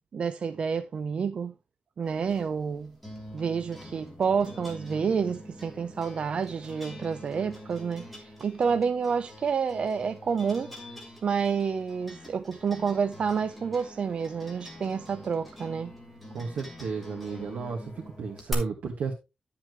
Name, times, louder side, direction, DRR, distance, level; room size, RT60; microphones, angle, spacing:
voice 1, 0.0-1.5 2.0-2.9 3.3-10.7 11.2-15.9, right 6 dB, 45° right, 0.5 m, -29 dB
sound 1, 2.1-18.5, equal, ahead, 3.2 m, -45 dB
voice 2, 16.3-17.9 18.2-19.1, right 5 dB, 85° right, 2.0 m, -33 dB
11.5 x 7.4 x 3.2 m
wide cardioid pair, 175°, 3 cm